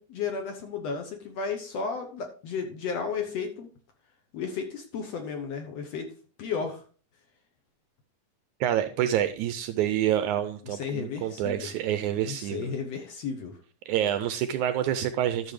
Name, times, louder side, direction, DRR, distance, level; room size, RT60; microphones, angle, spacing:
voice 1, 0.0-3.7 4.3-6.1 6.4-6.8 10.7-11.7 12.3-13.5, left 5 dB, 65° left, 5 dB, 1.8 m, -33 dB
voice 2, 8.6-12.7 13.9-15.5, right 11 dB, 80° right, 10 dB, 1.8 m, -27 dB
12.5 x 6.5 x 3.3 m, 0.39 s
omnidirectional pair, 3.8 m